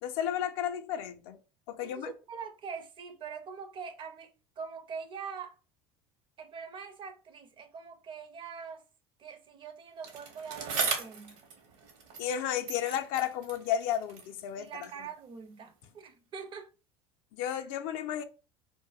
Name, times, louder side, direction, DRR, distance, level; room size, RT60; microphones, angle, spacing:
voice 1, 0.0-1.4 1.7-2.1 12.2-14.9 17.4-18.2, left 10 dB, 65° left, 0.4 m, -33 dB
voice 2, 1.8-5.6 6.4-8.8 9.2-11.4 14.6-16.7, right 6 dB, 40° right, 0.5 m, -43 dB
Bicycle, 10.0-12.4 12.7-15.0 15.8-15.9, right 5 dB, 65° right, 0.8 m, -38 dB
2.2 x 2.0 x 3.3 m
hypercardioid pair, 80°, 13 cm